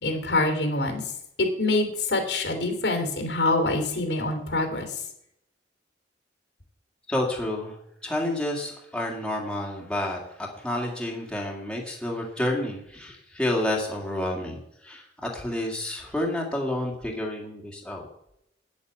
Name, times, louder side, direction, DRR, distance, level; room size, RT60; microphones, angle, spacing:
voice 1, 0.0-1.0 1.4-5.0, left 2 dB, 75° left, 5 dB, 2.9 m, -25 dB
voice 2, 7.1-18.1, left 1 dB, 5° left, -1 dB, 2.1 m, -30 dB
9.7 x 8.4 x 7.7 m, 0.79 s
head